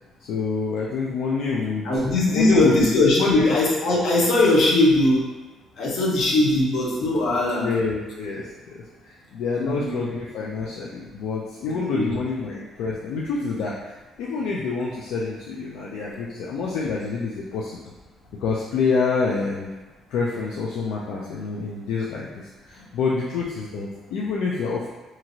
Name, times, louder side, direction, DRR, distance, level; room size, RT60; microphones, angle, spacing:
voice 1, 0.2-2.9 3.2-3.5 7.6-17.8 18.4-19.7 20.1-24.9, left 4 dB, 85° left, -4 dB, 0.3 m, -27 dB
voice 2, 1.8-5.2 5.8-7.7 9.6-9.9 11.7-12.1, left 2 dB, 65° left, -4 dB, 0.7 m, -20 dB
2.8 x 2.5 x 2.7 m, 1.2 s
cardioid pair, 115°, 0 cm